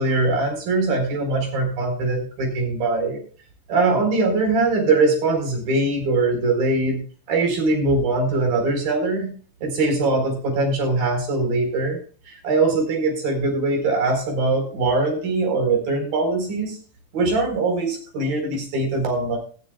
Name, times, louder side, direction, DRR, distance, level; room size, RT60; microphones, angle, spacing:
voice 1, 0.0-3.2 3.7-9.3 9.6-12.0 12.3-16.8 17.1-19.4, right 3 dB, 65° right, 3 dB, 6.1 m, -22 dB
19.5 x 13.0 x 2.3 m, 0.42 s
omnidirectional pair, 4.3 m